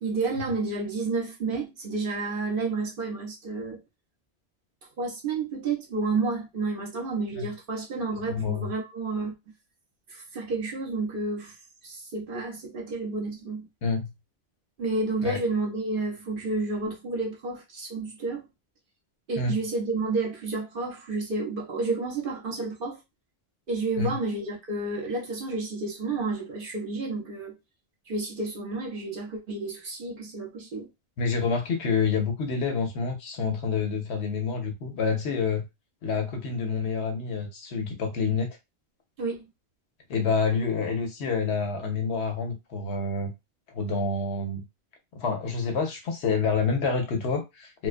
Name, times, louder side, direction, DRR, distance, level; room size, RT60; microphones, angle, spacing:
voice 1, 0.0-3.8 5.0-9.3 10.1-11.5 11.8-13.6 14.8-18.4 19.3-23.0 23.7-27.5 28.1-30.9 39.2-39.4, right 3 dB, 55° right, 0.9 m, -30 dB
voice 2, 8.3-8.7 13.8-14.1 15.2-15.4 19.4-19.6 24.0-24.2 31.2-35.6 36.0-38.5 40.1-43.3 43.7-44.6 45.1-47.9, left 5 dB, 85° left, 1.0 m, -28 dB
2.4 x 2.2 x 2.4 m
omnidirectional pair, 1.1 m